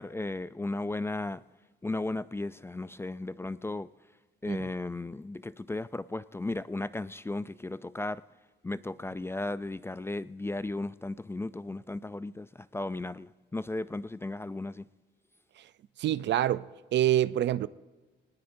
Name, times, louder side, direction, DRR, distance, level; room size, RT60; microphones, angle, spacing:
voice 1, 0.0-1.4 1.8-3.9 4.4-8.2 8.6-14.9, left 2 dB, 10° left, 0.3 m, -35 dB
voice 2, 16.0-17.7, right 12 dB, 65° right, 0.5 m, -26 dB
21.0 x 19.5 x 2.6 m
cardioid pair, 90°, 20 cm